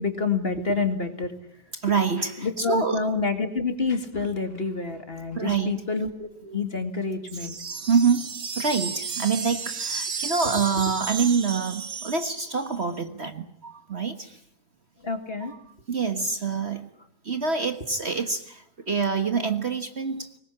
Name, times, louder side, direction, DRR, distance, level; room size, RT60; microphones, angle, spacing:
voice 1, 0.0-1.3 2.4-7.6 15.0-15.5, left 4 dB, 35° left, 7 dB, 2.3 m, -28 dB
voice 2, 1.7-3.0 5.3-5.8 7.4-7.5 7.7-14.4 15.4-15.6 15.9-16.9 17.2-20.4, right 5 dB, 40° right, 8 dB, 1.6 m, -26 dB
sound 1, 7.3-12.8, right 5 dB, 60° right, 2.1 m, -33 dB
24.0 x 20.5 x 9.9 m, 0.71 s
omnidirectional pair, 1.8 m